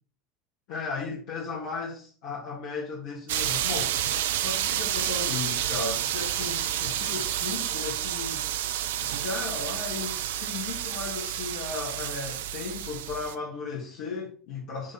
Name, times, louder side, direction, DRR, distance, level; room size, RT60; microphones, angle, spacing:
voice 1, 0.7-4.1 4.4-8.5 9.0-14.9, left 4 dB, 60° left, 2.0 m, -36 dB
sound 1, 3.3-13.3, right 11 dB, 70° right, 0.5 m, -30 dB
8.4 x 3.6 x 4.4 m
figure-of-eight pair, 75°, 0 cm